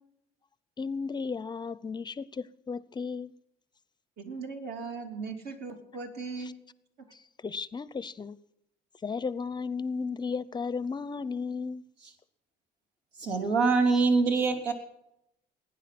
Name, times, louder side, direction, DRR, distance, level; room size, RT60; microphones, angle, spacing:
voice 1, 0.8-3.3 6.4-6.5 7.1-8.4 9.0-11.8, left 5 dB, 25° left, 0.6 m, -34 dB
voice 2, 4.2-6.6, right 4 dB, 65° right, 3.2 m, -38 dB
voice 3, 13.2-14.7, right 4 dB, 85° right, 3.4 m, -24 dB
20.5 x 10.0 x 6.0 m
cardioid pair, 110°, 17 cm